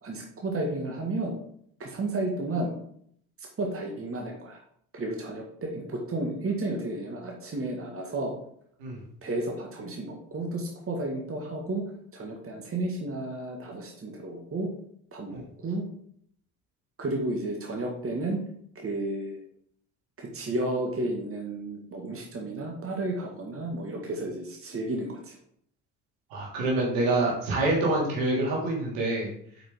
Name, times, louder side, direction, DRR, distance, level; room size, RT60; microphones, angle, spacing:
voice 1, 0.0-1.4 1.8-2.7 3.6-4.6 4.9-8.3 9.2-11.8 12.1-14.7 15.1-15.8 17.0-18.4 18.8-19.4 20.2-25.3, right 2 dB, 30° right, 0 dB, 1.9 m, -32 dB
voice 2, 26.3-29.3, right 2 dB, 65° right, -3 dB, 2.7 m, -26 dB
8.5 x 5.3 x 3.8 m, 0.66 s
figure-of-eight pair, 45°, 46 cm